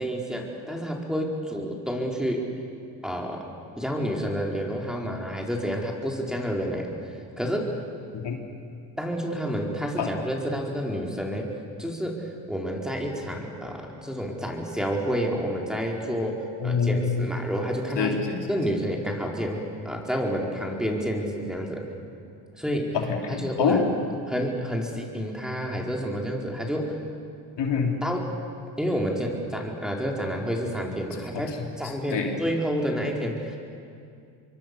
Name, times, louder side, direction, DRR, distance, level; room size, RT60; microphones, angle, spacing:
voice 1, 0.0-2.5 3.0-3.4 3.8-7.0 7.4-7.7 9.0-11.5 11.8-18.2 18.5-21.8 22.6-23.0 23.4-23.8 24.3-27.0 28.0-28.3 28.8-33.6, equal, ahead, 0 dB, 4.7 m, -29 dB
voice 2, 16.6-17.3 18.0-18.4 22.9-23.9 27.6-28.0 32.1-32.3, left 5 dB, 60° left, 2 dB, 3.1 m, -25 dB
26.0 x 23.0 x 7.0 m, 2.4 s
supercardioid pair, 70°, 47 cm